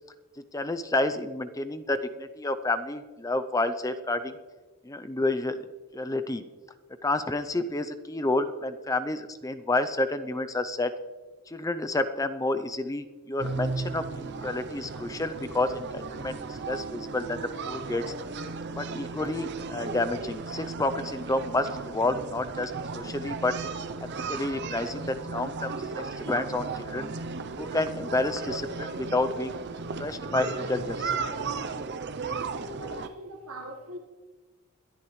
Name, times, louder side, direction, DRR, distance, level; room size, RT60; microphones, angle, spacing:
voice 1, 0.5-4.3 4.8-5.6 5.9-6.4 7.0-10.9 11.5-18.0 18.8-23.5 24.3-27.1 27.6-29.6 30.0-31.1, left 2 dB, 15° left, 0.5 m, -30 dB
sound 1, 13.4-33.1, right 4 dB, 50° right, 0.6 m, -35 dB
voice 2, 32.2-34.0, equal, 80° right, 1.4 m, -42 dB
21.5 x 12.0 x 3.2 m
head